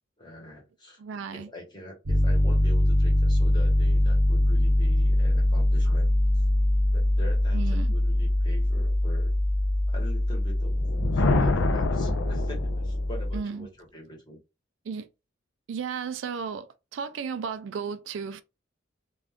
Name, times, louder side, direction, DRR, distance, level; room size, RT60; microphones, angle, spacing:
voice 1, 0.2-1.0 1.3-6.1 6.9-9.3 9.9-10.8 11.1-14.4, left 1 dB, 25° left, 1.1 m, -44 dB
voice 2, 1.0-1.5 7.5-7.9 13.3-13.7 14.8-15.1 15.7-18.4, right 6 dB, 70° right, 0.3 m, -34 dB
Piano, 2.1-13.4, left 1 dB, 90° right, 0.8 m, -23 dB
Thunder, 10.6-13.2, left 2 dB, 75° left, 0.4 m, -27 dB
2.4 x 2.3 x 3.4 m
head